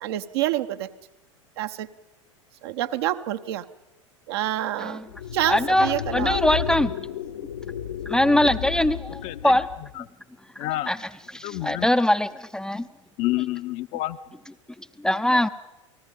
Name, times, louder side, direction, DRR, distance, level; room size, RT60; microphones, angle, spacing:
voice 1, 0.0-0.9 1.6-1.9 2.6-3.6 4.3-5.0 5.3-6.4, right 13 dB, 50° right, 9 dB, 0.9 m, -27 dB
sound 1, 5.1-9.9, left 9 dB, 70° left, 1.2 m, -32 dB
voice 2, 5.5-6.9 8.1-9.7 10.9-11.0 11.3-12.9 14.8-15.5, left 1 dB, 5° left, 10 dB, 0.6 m, -22 dB
voice 3, 9.2-9.5 10.0-10.1 10.6-10.9 11.4-11.9 13.2-14.2, left 17 dB, 40° left, 10 dB, 0.8 m, -28 dB
29.0 x 19.5 x 5.3 m, 0.99 s
figure-of-eight pair, 85°, 16 cm